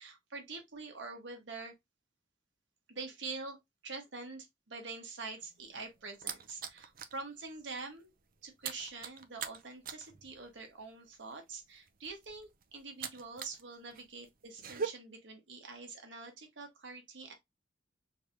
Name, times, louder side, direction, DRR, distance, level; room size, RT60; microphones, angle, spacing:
voice 1, 0.0-1.7 2.9-3.6 3.8-8.1 8.4-17.3, right 3 dB, 75° right, 1.2 m, -45 dB
sound 1, 5.4-7.2 7.6-13.6 13.9-14.9, right 6 dB, 50° right, 0.5 m, -42 dB
3.3 x 3.3 x 2.7 m
head